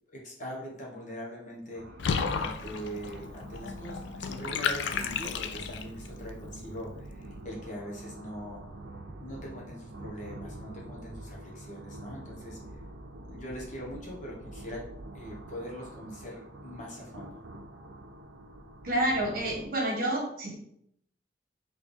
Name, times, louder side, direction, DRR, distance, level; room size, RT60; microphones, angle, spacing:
voice 1, 0.1-8.6 9.2-12.6 13.3-14.9 15.1-17.4, equal, 45° left, -3 dB, 1.3 m, -42 dB
sound 1, 1.7-19.7, right 1 dB, 85° right, 0.6 m, -46 dB
Water / Bathtub (filling or washing), 2.0-6.1, left 5 dB, 85° left, 0.4 m, -33 dB
voice 2, 18.8-20.5, right 1 dB, 55° right, -1 dB, 1.3 m, -29 dB
4.3 x 3.4 x 3.4 m, 0.72 s
head